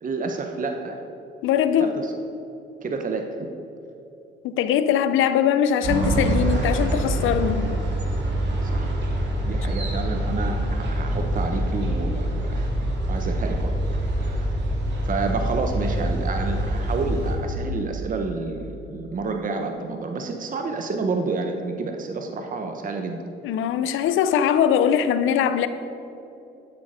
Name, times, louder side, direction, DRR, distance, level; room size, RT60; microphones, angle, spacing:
voice 1, 0.0-1.0 1.8-2.1 2.8-3.5 8.6-9.0 9.4-12.7 13.1-14.5 15.0-23.2, right 3 dB, 40° right, 4 dB, 1.0 m, -29 dB
voice 2, 1.4-2.0 4.4-7.8 23.4-25.7, left 9 dB, 85° left, 11 dB, 0.7 m, -21 dB
sound 1, 5.8-17.4, right 1 dB, 60° right, 2.5 m, -25 dB
11.5 x 7.6 x 5.1 m, 2.9 s
cardioid pair, 90°, 20 cm